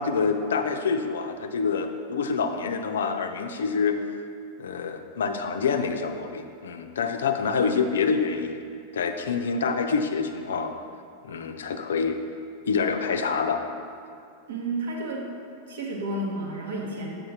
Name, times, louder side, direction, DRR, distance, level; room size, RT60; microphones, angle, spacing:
voice 1, 0.0-4.0 4.6-8.6 8.9-10.7 11.2-12.2 12.7-13.6, left 5 dB, 65° left, 6 dB, 0.5 m, -26 dB
voice 2, 14.5-15.3 15.7-17.2, right 2 dB, 60° right, -1 dB, 1.2 m, -31 dB
7.5 x 5.1 x 4.2 m, 2.4 s
figure-of-eight pair, 90°, 0 cm